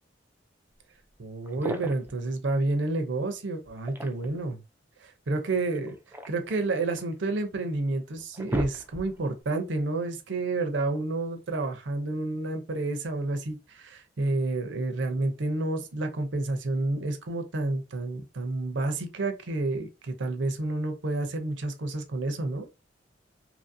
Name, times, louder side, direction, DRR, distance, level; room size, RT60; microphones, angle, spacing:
sound 1, 1.0-1.1 1.4-2.2 3.6-4.5 5.7-7.1 7.7-7.8 8.2-9.3, right 1 dB, 10° right, 0.4 m, -36 dB
voice 1, 1.2-4.6 5.0-5.9 6.3-22.7, right 2 dB, 75° right, 0.6 m, -30 dB
2.9 x 2.6 x 2.6 m
head